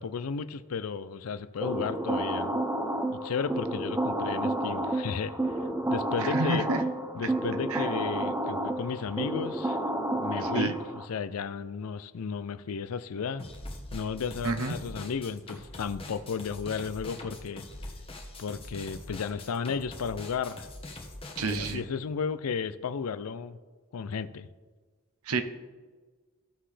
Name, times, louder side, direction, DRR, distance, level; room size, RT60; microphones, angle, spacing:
voice 1, 0.0-2.5 3.1-5.3 5.9-6.7 7.1-9.8 10.1-10.7 11.1-13.4 13.9-17.6 18.4-20.7 21.4-23.6 23.9-24.5, left 6 dB, 85° left, 15 dB, 0.4 m, -33 dB
sound 1, 1.6-11.1, right 1 dB, 10° right, 0.5 m, -30 dB
voice 2, 6.2-6.8 7.7-7.9 10.4-10.7 14.4-14.7 21.4-21.8 25.3-25.4, right 3 dB, 85° right, 9 dB, 0.8 m, -29 dB
sound 2, 13.4-21.7, left 2 dB, 25° left, 1.2 m, -43 dB
14.5 x 5.6 x 3.3 m, 1.4 s
head